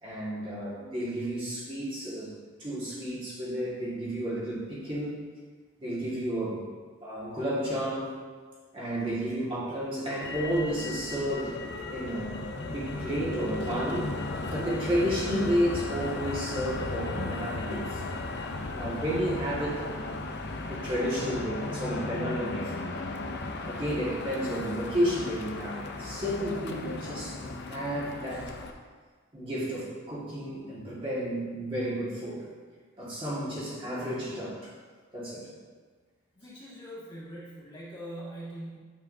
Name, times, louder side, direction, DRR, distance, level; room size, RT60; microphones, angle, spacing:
voice 1, 0.0-2.3 2.6-5.2 5.8-6.7 7.0-8.2 8.7-18.0 18.7-19.9 20.7-22.8 23.6-28.5 29.3-32.4 33.0-34.7 35.1-35.5, equal, 25° right, -8 dB, 1.8 m, -32 dB
Motor vehicle (road), 10.2-28.7, left 2 dB, 50° left, 0.6 m, -36 dB
voice 2, 36.3-38.8, right 1 dB, 20° left, -8 dB, 1.9 m, -42 dB
9.3 x 7.5 x 2.7 m, 1.5 s
head